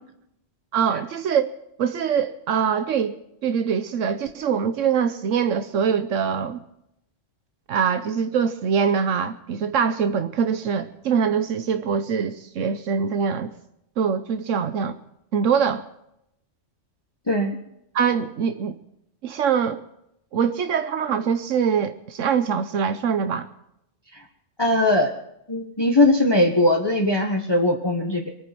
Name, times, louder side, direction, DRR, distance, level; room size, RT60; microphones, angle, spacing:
voice 1, 0.7-1.5 1.8-6.6 7.7-13.5 14.0-15.0 15.3-15.8 17.9-18.8 19.2-19.8 20.3-23.5, right 7 dB, 85° right, 1.2 m, -23 dB
voice 2, 24.6-25.1 25.5-28.3, left 1 dB, 20° left, 1.4 m, -20 dB
23.5 x 9.5 x 6.1 m
omnidirectional pair, 1.3 m